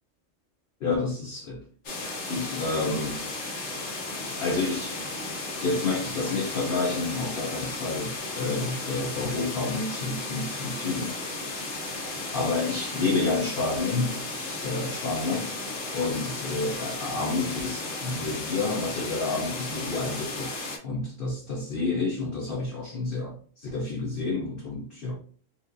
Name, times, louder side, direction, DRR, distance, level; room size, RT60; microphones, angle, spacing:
voice 1, 0.8-1.6 2.3-3.2 4.4-5.0 5.6-11.2 11.6-11.9 12.3-15.5 15.9-25.2, left 3 dB, 55° left, 0.7 m, -29 dB
sound 1, 1.9-20.8, left 2 dB, 90° left, 1.5 m, -34 dB
4.3 x 2.5 x 2.6 m
omnidirectional pair, 1.3 m